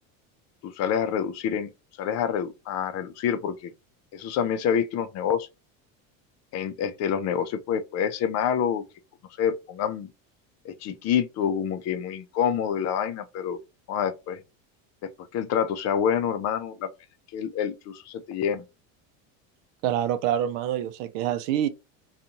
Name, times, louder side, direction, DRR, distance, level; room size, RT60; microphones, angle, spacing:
voice 1, 0.6-1.7 2.0-3.7 4.1-5.5 6.5-8.8 9.4-10.1 10.6-13.6 13.9-14.4 15.0-16.9 17.3-18.6, left 8 dB, 40° left, 0.5 m, -27 dB
voice 2, 19.8-21.7, right 10 dB, 75° right, 0.6 m, -26 dB
2.5 x 2.4 x 2.8 m
supercardioid pair, 120°, 40 cm